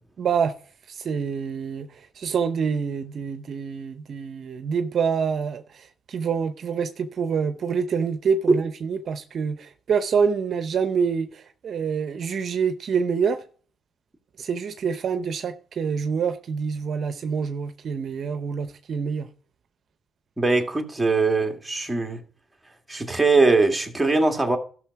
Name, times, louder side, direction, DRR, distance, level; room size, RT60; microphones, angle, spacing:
voice 1, 0.2-0.5 0.9-13.4 14.4-19.3, right 6 dB, 55° right, 0.7 m, -26 dB
voice 2, 20.4-22.2 22.9-24.6, right 3 dB, 10° right, 2.1 m, -21 dB
12.5 x 6.3 x 4.7 m
cardioid pair, 90°, 0 cm